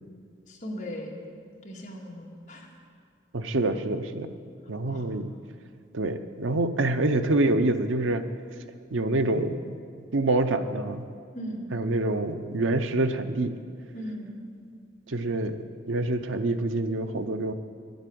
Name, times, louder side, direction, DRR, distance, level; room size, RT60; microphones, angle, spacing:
voice 1, 0.5-1.2 1.6-2.7 4.8-5.1 11.3-11.7 13.9-14.4, equal, 40° left, -3 dB, 2.1 m, -38 dB
voice 2, 3.3-4.3 4.7-5.3 5.9-8.3 8.9-9.8 10.1-11.0 11.7-13.5 15.1-15.6 15.9-17.5, right 2 dB, 90° right, 9 dB, 0.7 m, -26 dB
11.5 x 8.0 x 9.3 m, 2.1 s
head